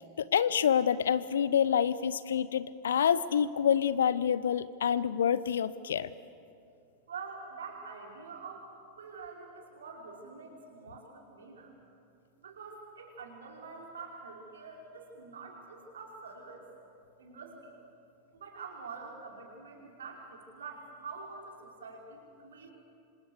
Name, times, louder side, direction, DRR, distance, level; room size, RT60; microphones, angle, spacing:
voice 1, 0.0-6.1, left 8 dB, 65° left, 17 dB, 0.8 m, -27 dB
voice 2, 7.1-8.7 9.0-11.7 12.4-16.7 17.2-17.7 18.3-22.7, right 4 dB, 65° right, 0 dB, 5.0 m, -46 dB
27.5 x 26.0 x 6.7 m, 2.5 s
figure-of-eight pair, 90°, 0 cm